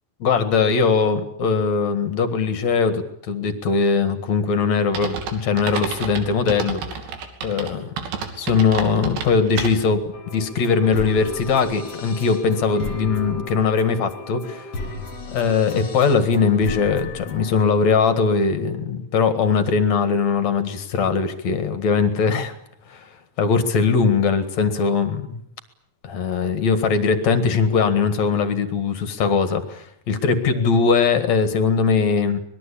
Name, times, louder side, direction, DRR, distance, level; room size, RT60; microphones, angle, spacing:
voice 1, 0.2-6.8 7.4-7.9 8.4-14.7 15.3-22.5 22.9-23.1 23.4-25.4 26.0-32.4, left 5 dB, 50° left, 10 dB, 2.5 m, -20 dB
sound 1, 4.9-10.0, right 6 dB, 80° right, 4.8 m, -31 dB
sound 2, 10.1-17.6, left 2 dB, 30° left, 2.8 m, -34 dB
25.0 x 21.0 x 8.6 m, 0.69 s
omnidirectional pair, 4.9 m